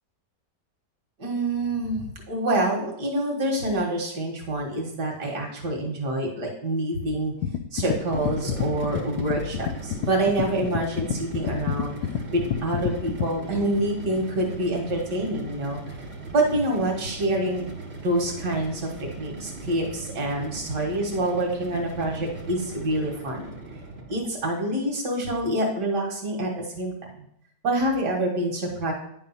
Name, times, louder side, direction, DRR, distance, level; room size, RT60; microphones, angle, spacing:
voice 1, 1.2-7.3 7.7-11.9 12.3-15.8 16.3-17.6 18.0-18.9 19.2-23.5 24.1-27.3 27.6-28.9, right 1 dB, 75° right, 1 dB, 2.3 m, -26 dB
sound 1, 7.4-13.3, left 9 dB, 75° left, 1.1 m, -29 dB
sound 2, 7.9-24.3, right 3 dB, 40° right, 1.2 m, -39 dB
10.0 x 3.9 x 5.7 m, 0.73 s
omnidirectional pair, 1.8 m